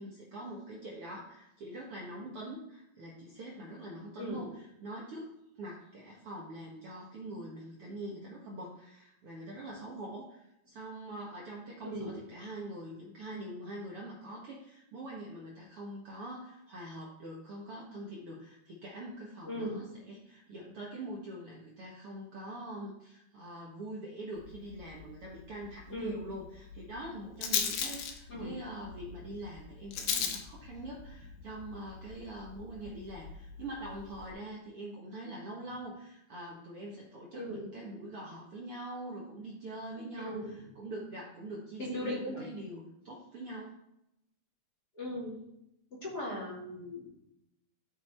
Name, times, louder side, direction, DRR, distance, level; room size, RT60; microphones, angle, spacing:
voice 1, 0.0-43.8, right 1 dB, 90° right, -3 dB, 1.2 m, -44 dB
voice 2, 11.8-12.1 19.4-19.8 25.9-26.2 28.3-28.5 37.3-37.6 40.2-40.5 41.8-42.4 44.9-45.3 45.9-47.1, left 1 dB, 30° left, -6 dB, 2.3 m, -38 dB
Rattle, 24.4-34.3, left 7 dB, 80° left, 3.0 m, -39 dB
13.5 x 4.6 x 4.4 m, 0.83 s
omnidirectional pair, 4.6 m